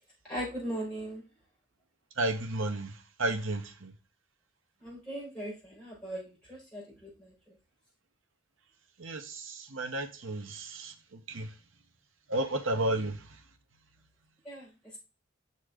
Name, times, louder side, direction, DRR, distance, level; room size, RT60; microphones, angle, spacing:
voice 1, 0.3-1.2 4.8-7.3 14.4-14.6, right 1 dB, 5° left, 4.6 m, -39 dB
voice 2, 2.2-3.9 9.0-11.5 12.3-13.2, right 2 dB, 80° right, 1.0 m, -33 dB
6.3 x 4.3 x 4.8 m
head